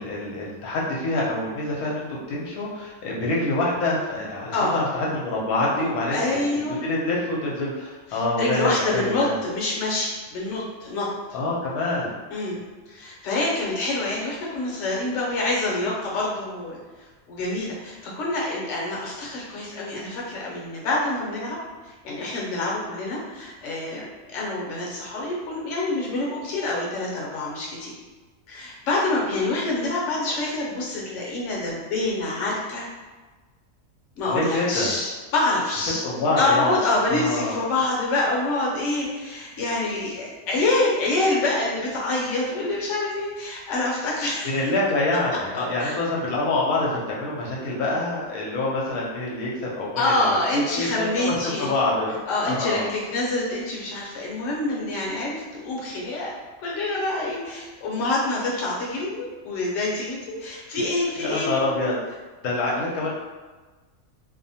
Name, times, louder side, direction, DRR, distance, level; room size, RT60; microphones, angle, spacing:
voice 1, 0.0-6.4 6.7-9.4 11.3-12.1 34.3-34.9 36.0-36.8 37.1-37.6 44.4-50.4 50.7-52.2 52.4-52.9 61.2-62.0 62.4-63.1, left 2 dB, 85° left, -4 dB, 1.1 m, -26 dB
voice 2, 5.8-6.8 8.1-11.1 12.3-12.6 12.9-16.8 17.3-21.6 21.8-27.9 28.5-32.9 34.2-36.0 36.4-44.5 45.8-46.0 50.0-51.7 52.3-56.3 56.6-61.6, left 2 dB, 65° left, -4 dB, 1.0 m, -26 dB
2.7 x 2.1 x 2.7 m, 1.3 s
omnidirectional pair, 1.5 m